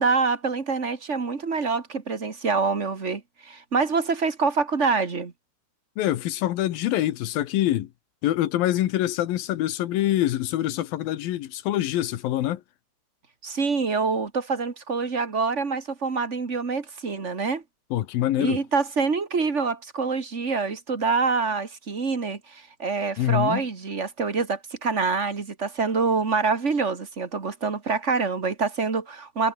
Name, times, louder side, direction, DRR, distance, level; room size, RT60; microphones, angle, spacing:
voice 1, 0.0-5.3 13.4-17.6 18.4-29.5, right 4 dB, 30° right, 1.3 m, -26 dB
voice 2, 6.0-7.9 8.2-12.6 17.9-18.6 23.2-23.6, left 13 dB, 75° left, 2.9 m, -25 dB
omnidirectional pair, 4.3 m